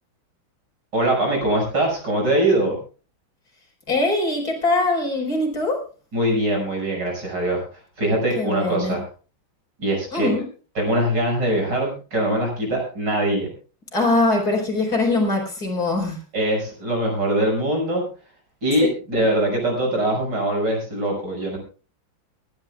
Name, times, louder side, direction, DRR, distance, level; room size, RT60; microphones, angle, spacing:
voice 1, 0.9-2.8 6.1-7.6 8.0-9.0 9.8-10.3 10.7-13.5 16.3-18.0 18.6-21.6, right 1 dB, 55° right, 0 dB, 6.7 m, -22 dB
voice 2, 3.9-5.8 8.4-9.0 10.1-10.4 13.9-16.2 19.1-19.2, left 2 dB, 45° left, 1 dB, 5.0 m, -22 dB
25.5 x 12.0 x 2.3 m, 0.36 s
omnidirectional pair, 2.3 m